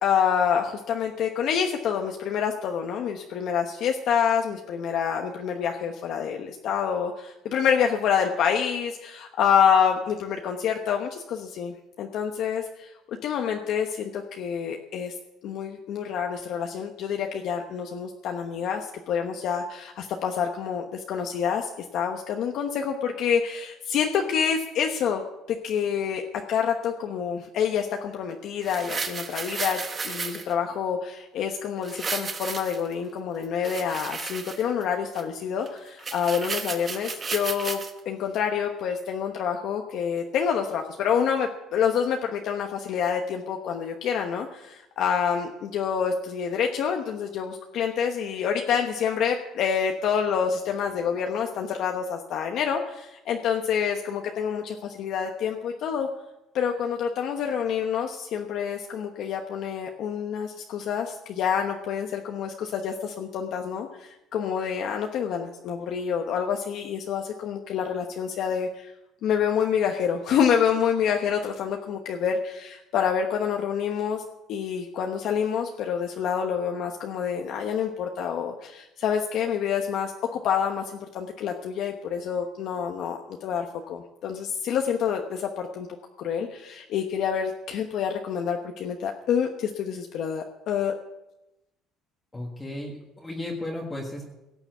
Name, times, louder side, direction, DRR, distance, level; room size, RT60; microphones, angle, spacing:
voice 1, 0.0-15.1 15.4-25.2 25.5-26.2 26.5-29.8 30.0-37.8 38.0-56.1 56.5-68.9 69.2-74.2 74.5-85.9 86.2-90.9, left 7 dB, 55° left, 3 dB, 1.1 m, -27 dB
sound 1, 28.6-30.5 31.8-32.9 33.4-34.8 35.1-35.2 35.7-35.8 36.0-37.9 38.4-38.5, right 4 dB, 25° right, 1.2 m, -33 dB
voice 2, 92.3-94.3, left 1 dB, 10° left, -1 dB, 1.7 m, -34 dB
17.5 x 7.0 x 8.1 m, 0.95 s
cardioid pair, 155°, 0 cm